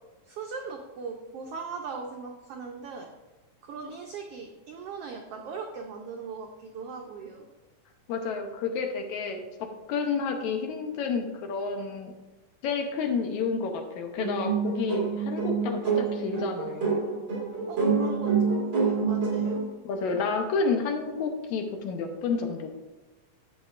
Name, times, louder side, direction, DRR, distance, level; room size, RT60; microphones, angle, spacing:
voice 1, 0.2-3.1 3.6-7.5 17.7-19.6, right 5 dB, 85° right, 2 dB, 1.3 m, -39 dB
voice 2, 8.1-9.4 9.9-12.1 12.6-17.0 19.8-22.7, left 5 dB, 75° left, 4 dB, 2.1 m, -30 dB
sound 1, 14.2-19.6, right 5 dB, 40° right, 2.7 m, -27 dB
11.0 x 7.7 x 2.5 m, 1.1 s
omnidirectional pair, 3.6 m